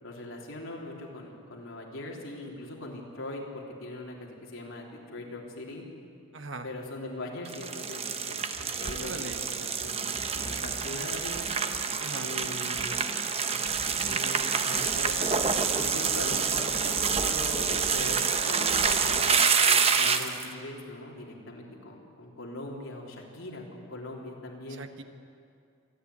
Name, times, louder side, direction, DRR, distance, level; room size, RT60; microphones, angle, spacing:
voice 1, 0.0-5.8 6.6-11.5 12.2-13.0 14.1-15.2 15.8-24.8, left 1 dB, 70° left, -1 dB, 3.5 m, -40 dB
voice 2, 6.3-6.7 9.1-9.4 12.0-12.3 24.7-25.0, right 3 dB, 60° right, 7 dB, 1.2 m, -39 dB
sound 1, 7.5-20.5, right 6 dB, 30° right, 0.9 m, -27 dB
26.5 x 10.0 x 9.8 m, 2.5 s
head